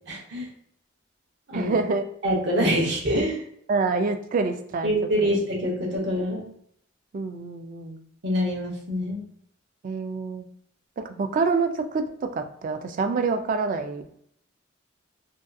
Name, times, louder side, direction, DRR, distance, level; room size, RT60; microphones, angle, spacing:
voice 1, 0.1-0.5 1.5-1.7 2.2-3.4 4.8-6.5 8.2-9.2, equal, 60° right, -2 dB, 0.8 m, -25 dB
voice 2, 1.5-2.0 3.7-4.9 5.2-5.4 7.1-8.0 9.8-10.4 11.0-14.1, right 4 dB, 45° right, 6 dB, 0.3 m, -26 dB
2.6 x 2.3 x 2.5 m, 0.68 s
head